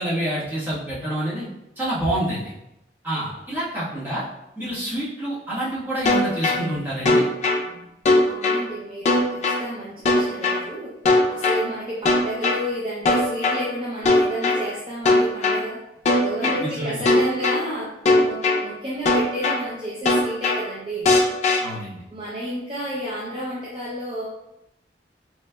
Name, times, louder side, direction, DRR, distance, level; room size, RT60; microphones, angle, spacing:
voice 1, 0.0-1.5 1.8-2.5 3.0-4.2 4.6-7.3 16.6-17.0 21.6-22.0, right 1 dB, 10° right, -10 dB, 1.3 m, -27 dB
sound 1, 6.1-6.6 7.1-7.6 8.1-8.6 9.1-9.6 10.1-10.6 11.1-11.6 12.1-12.6 13.1-13.6 14.1-14.6 15.1-15.6 16.1-16.6 17.1-17.6 18.1-18.6 19.1-19.6 20.1-20.6 21.1-21.6, left 2 dB, 40° left, 0.5 m, -18 dB
voice 2, 7.5-7.9 8.3-10.9 11.3-15.8 16.2-18.0 18.2-21.1 22.1-24.3, equal, 30° right, -7 dB, 0.6 m, -31 dB
4.0 x 3.1 x 2.2 m, 0.85 s
head